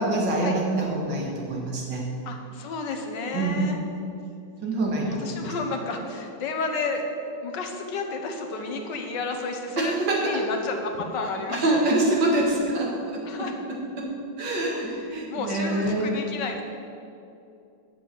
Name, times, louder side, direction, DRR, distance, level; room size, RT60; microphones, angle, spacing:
voice 1, 0.0-2.1 3.3-3.6 4.6-5.5 9.8-10.5 11.5-16.1, right 2 dB, 85° right, -2 dB, 2.5 m, -26 dB
voice 2, 2.3-3.8 5.0-7.1 7.4-11.6 13.2-13.5 14.8-16.6, left 3 dB, 75° left, 4 dB, 1.8 m, -32 dB
9.3 x 6.9 x 7.7 m, 2.6 s
omnidirectional pair, 1.9 m